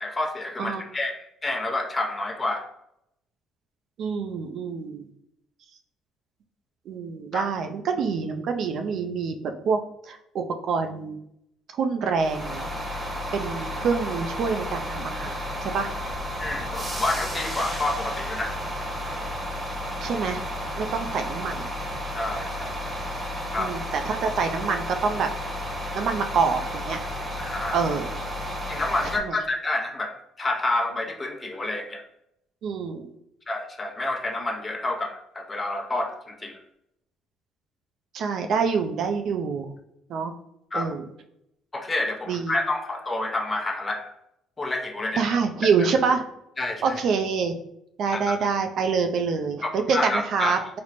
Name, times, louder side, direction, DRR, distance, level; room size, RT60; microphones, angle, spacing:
voice 1, 0.0-2.7 7.3-7.4 16.4-18.7 22.1-22.8 23.5-23.7 27.4-27.8 28.7-32.0 33.5-36.6 40.7-40.9 41.7-44.1 44.6-45.2 46.6-47.0 48.0-48.5 49.6-50.8, left 2 dB, 30° left, 4 dB, 0.7 m, -29 dB
voice 2, 4.0-5.1 6.9-11.2 11.8-12.7 13.3-15.9 20.0-20.4 20.8-21.7 23.6-25.3 25.9-27.0 27.7-28.2 29.2-29.4 32.6-33.1 38.1-39.7 40.1-40.3 40.7-41.0 42.3-42.5 45.2-46.2 46.8-47.6 48.0-50.8, right 5 dB, 60° right, 6 dB, 0.4 m, -26 dB
sound 1, 12.2-29.2, equal, 20° right, 1.0 m, -32 dB
3.0 x 2.0 x 4.1 m, 0.79 s
supercardioid pair, 65°, 0 cm